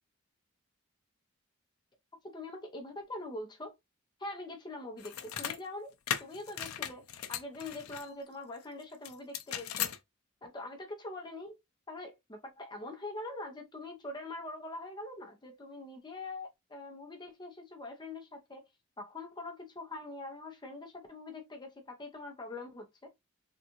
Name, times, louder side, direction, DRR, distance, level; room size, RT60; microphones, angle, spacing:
voice 1, 2.2-3.7 4.2-5.9 6.2-9.9 10.4-11.6 11.9-18.6 19.0-23.1, left 2 dB, 20° left, 0.7 m, -43 dB
sound 1, 5.0-5.6 6.1-8.1 9.0-10.0, left 10 dB, 85° left, 0.5 m, -37 dB
3.6 x 2.4 x 2.8 m
head